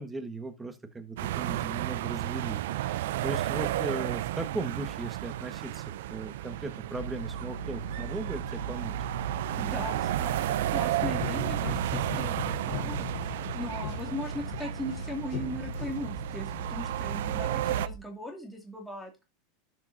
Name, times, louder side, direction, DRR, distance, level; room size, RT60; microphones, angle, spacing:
voice 1, 0.0-9.1, right 3 dB, 15° right, 9 dB, 1.5 m, -38 dB
sound 1, 1.2-17.9, right 14 dB, 75° right, 0.4 m, -33 dB
sound 2, 7.0-18.0, right 2 dB, 80° left, 1.5 m, -40 dB
voice 2, 9.5-19.2, left 1 dB, 5° left, 0 dB, 2.4 m, -39 dB
sound 3, 11.0-16.5, left 11 dB, 65° left, 0.8 m, -39 dB
12.0 x 6.4 x 2.7 m, 0.26 s
hypercardioid pair, 100°, 0 cm